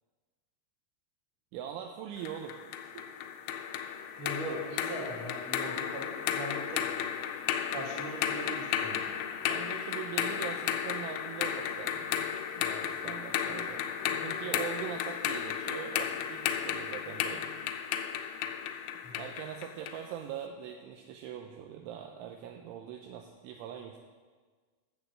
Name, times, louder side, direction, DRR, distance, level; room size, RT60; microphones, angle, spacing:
voice 1, 1.5-2.6 2.8-3.1 9.5-12.1 12.6-17.4 19.1-24.0, right 9 dB, 80° right, 3 dB, 3.0 m, -42 dB
sound 1, 2.3-20.1, left 9 dB, 80° left, 3.1 m, -34 dB
voice 2, 4.2-7.0 7.7-9.1 19.0-19.2, right 1 dB, 50° right, -2 dB, 3.0 m, -40 dB
11.0 x 6.9 x 7.8 m, 1.5 s
omnidirectional pair, 5.7 m